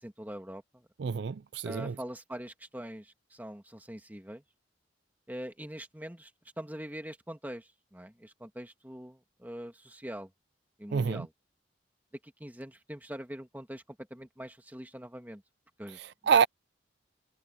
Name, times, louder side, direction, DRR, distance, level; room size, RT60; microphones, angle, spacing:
voice 1, 0.0-0.9 1.6-4.4 5.3-6.3 6.6-10.3 10.8-11.3 12.2-15.4 15.8-16.0, equal, 10° right, 1.9 m, -43 dB
voice 2, 1.0-1.9 10.9-11.3 16.0-16.5, right 6 dB, 60° right, 0.4 m, -27 dB
head